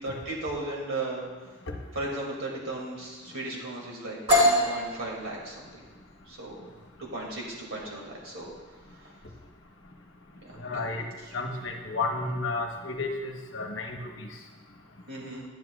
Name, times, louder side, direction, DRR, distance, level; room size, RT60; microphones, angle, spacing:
voice 1, 0.0-1.3 1.9-5.9 6.3-6.6 7.0-8.5 9.0-9.1 10.4-10.9 11.2-11.3 15.1-15.4, right 2 dB, 70° right, -3 dB, 2.3 m, -36 dB
sound 1, 4.3-11.9, left 1 dB, 25° right, 2.1 m, -29 dB
voice 2, 10.6-11.0 11.3-14.3, left 3 dB, 65° left, 2 dB, 1.0 m, -32 dB
10.5 x 10.0 x 2.3 m, 1.3 s
head